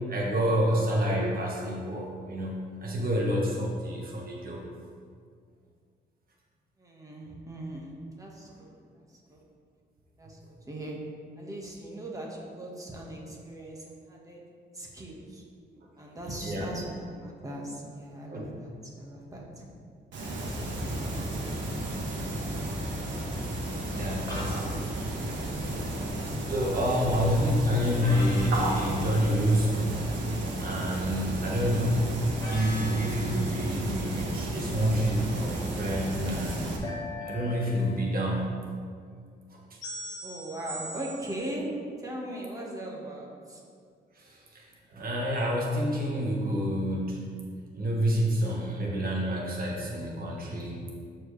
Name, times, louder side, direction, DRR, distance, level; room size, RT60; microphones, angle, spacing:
voice 1, 0.1-4.6 16.4-16.7 18.3-18.5 21.9-22.0 23.9-25.2 26.5-30.1 30.6-32.2 32.5-36.7 37.2-38.5 39.5-39.8 44.1-47.3 47.7-50.8, equal, 50° right, -2 dB, 1.4 m, -28 dB
voice 2, 6.8-7.9 8.2-8.7 9.1-9.4 10.2-10.4 10.7-11.0 11.4-14.4 14.7-15.4 16.0-19.7 20.4-21.1 40.2-41.7 42.0-43.6, right 1 dB, 20° right, -2 dB, 1.5 m, -39 dB
sound 1, 20.1-36.8, right 1 dB, 85° right, 1.4 m, -33 dB
sound 2, 24.3-24.8 28.0-29.7 32.4-33.8 36.8-38.3 39.8-41.6, left 1 dB, 20° left, 1.5 m, -41 dB
13.0 x 4.6 x 3.3 m, 2.1 s
cardioid pair, 120°, 19 cm